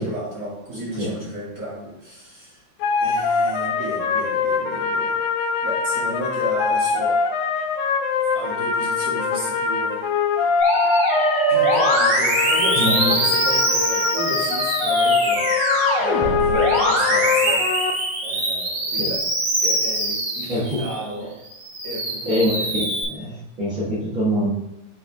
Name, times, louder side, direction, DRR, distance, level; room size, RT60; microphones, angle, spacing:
voice 1, 0.0-2.6 3.0-5.2 5.6-7.2 8.3-10.1 11.5-15.5 15.9-17.6 18.2-19.2 19.6-21.3 21.8-22.7, right 1 dB, 25° right, -8 dB, 2.2 m, -32 dB
voice 2, 0.7-1.3 12.7-13.1 19.0-19.1 20.5-20.8 22.2-22.5 23.0-24.5, equal, 45° right, -10 dB, 1.6 m, -24 dB
sound 1, 2.8-17.9, left 5 dB, 80° left, 2.0 m, -23 dB
Musical instrument, 10.6-21.0 21.5-23.0, right 1 dB, 65° right, 4.4 m, -23 dB
8.3 x 4.7 x 3.5 m, 0.94 s
omnidirectional pair, 4.6 m